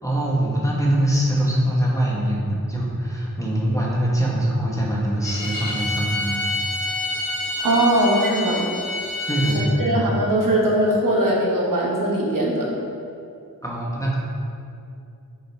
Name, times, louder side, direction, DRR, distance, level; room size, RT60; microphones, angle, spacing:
voice 1, 0.0-6.3 9.3-10.0 13.6-14.2, right 1 dB, 10° left, -5 dB, 1.1 m, -23 dB
Bowed string instrument, 5.2-9.7, left 2 dB, 70° left, 1.2 m, -28 dB
voice 2, 7.6-8.6 9.8-12.7, right 1 dB, 60° right, -4 dB, 1.3 m, -20 dB
5.4 x 3.9 x 4.6 m, 2.5 s
wide cardioid pair, 85°, 36 cm